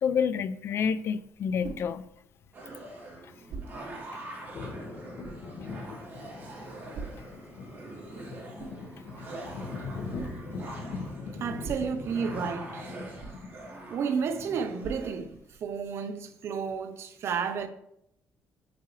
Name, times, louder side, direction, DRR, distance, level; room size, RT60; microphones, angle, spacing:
voice 1, 0.0-2.0 4.1-4.2, left 7 dB, 50° left, 0.4 m, -28 dB
sound 1, 1.0-15.9, right 4 dB, 70° right, 2.1 m, -48 dB
sound 2, 2.5-15.1, right 2 dB, 35° right, 2.5 m, -44 dB
sound 3, 3.5-13.9, left 4 dB, 70° left, 1.7 m, -41 dB
voice 2, 11.3-12.9 13.9-17.7, right 6 dB, 55° right, 0.8 m, -32 dB
8.1 x 7.9 x 3.2 m
cardioid pair, 150°, 5 cm